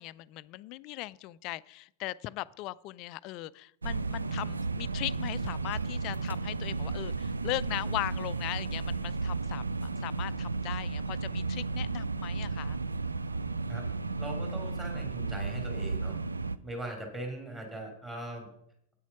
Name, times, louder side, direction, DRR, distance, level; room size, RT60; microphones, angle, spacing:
voice 1, 0.0-12.8, left 19 dB, 40° left, 19 dB, 0.3 m, -39 dB
sound 1, 3.8-16.6, right 3 dB, 75° right, 0.4 m, -33 dB
voice 2, 14.2-16.2 16.6-18.5, right 1 dB, 15° right, 1 dB, 3.2 m, -40 dB
8.9 x 8.3 x 5.9 m, 0.71 s
figure-of-eight pair, 90°, 0 cm